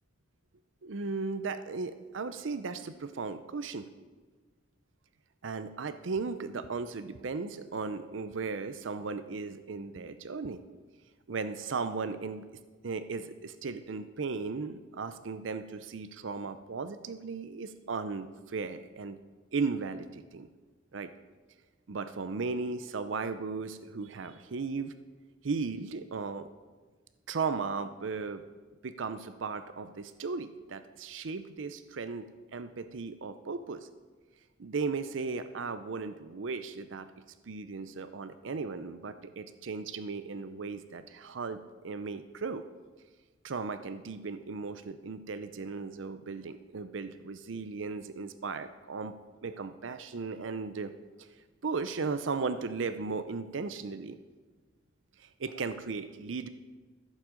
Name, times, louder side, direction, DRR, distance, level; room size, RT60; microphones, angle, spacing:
voice 1, 0.8-3.9 5.4-10.6 11.3-12.4 12.8-19.2 19.5-20.5 20.9-21.1 21.9-24.9 25.4-26.5 27.3-28.4 28.8-33.9 34.6-37.1 37.5-42.6 43.4-49.1 49.4-50.9 51.2-51.3 51.6-54.2 55.2-56.5, right 4 dB, 70° right, 11 dB, 0.6 m, -36 dB
14.5 x 7.5 x 5.1 m, 1.3 s
head